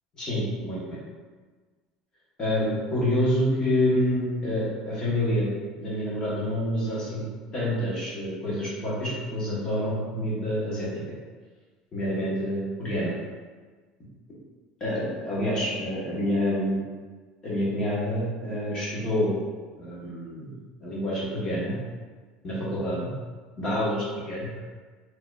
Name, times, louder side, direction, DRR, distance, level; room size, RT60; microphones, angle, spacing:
voice 1, 0.2-1.0 2.4-5.5 5.8-7.2 7.5-10.9 11.9-13.1 14.8-16.8 17.4-19.3 19.8-21.7 22.4-23.1 23.6-24.6, left 1 dB, 30° left, -7 dB, 1.3 m, -27 dB
4.1 x 2.9 x 2.4 m, 1.4 s
supercardioid pair, 120°, 2 cm